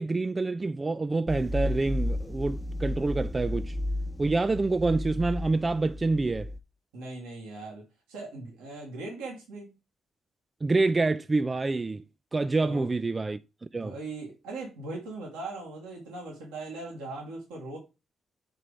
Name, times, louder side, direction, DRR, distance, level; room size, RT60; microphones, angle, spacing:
voice 1, 0.0-3.8 4.2-6.5 10.6-12.0 12.3-13.4 13.7-14.0, right 3 dB, 30° right, 0.4 m, -27 dB
sound 1, 1.3-6.6, left 1 dB, 5° left, 0.8 m, -33 dB
voice 2, 6.9-9.7 12.6-12.9 13.7-17.8, right 2 dB, 90° right, 1.6 m, -39 dB
4.9 x 4.5 x 4.8 m
supercardioid pair, 50°, 0 cm